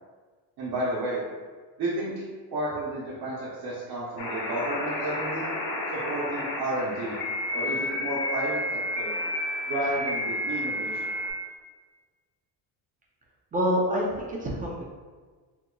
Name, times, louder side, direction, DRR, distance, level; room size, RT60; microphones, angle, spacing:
voice 1, 0.6-1.2 1.8-2.2 2.5-5.5 5.9-7.2 7.5-9.1 9.7-11.2, right 1 dB, 60° right, -8 dB, 0.8 m, -31 dB
sound 1, 4.2-11.3, left 1 dB, 70° left, 0.9 m, -31 dB
voice 2, 13.5-14.9, equal, 20° right, -3 dB, 0.4 m, -27 dB
3.7 x 2.9 x 2.2 m, 1.4 s
cardioid pair, 175°, 41 cm